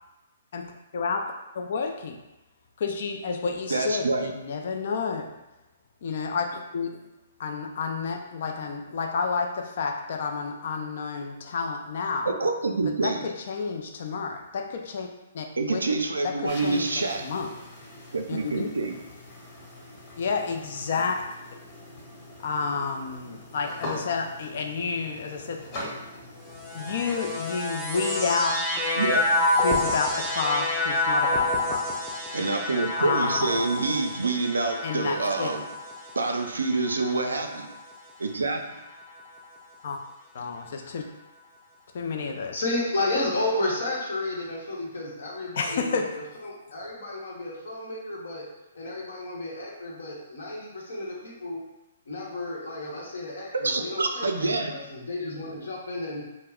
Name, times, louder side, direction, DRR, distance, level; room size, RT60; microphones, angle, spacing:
voice 1, 0.5-2.2 2.8-5.3 6.0-6.9 7.4-12.3 12.9-15.1 15.3-15.5 15.7-15.8 16.2-17.5 18.3-18.7 20.2-21.3 22.4-25.7 26.7-28.7 29.6-31.8 33.0-33.9 34.8-35.5 39.8-40.0 40.3-41.0 41.9-42.6 45.5-46.1, left 5 dB, 60° left, 3 dB, 0.4 m, -30 dB
voice 2, 3.7-4.3 12.3-13.2 15.6-17.2 18.1-19.0 29.0-29.2 32.3-35.6 36.2-37.7 38.2-38.6 53.5-54.7, right 3 dB, 90° right, 4 dB, 0.3 m, -27 dB
sound 1, 16.5-27.5, left 1 dB, 35° left, 1.1 m, -42 dB
sound 2, 26.5-38.0 38.7-39.5, left 2 dB, 5° right, 0.5 m, -29 dB
voice 3, 42.5-48.4 48.7-51.6 52.1-56.3, left 2 dB, 80° left, -3 dB, 0.9 m, -32 dB
2.3 x 2.0 x 3.5 m, 0.97 s
hypercardioid pair, 135°, 0 cm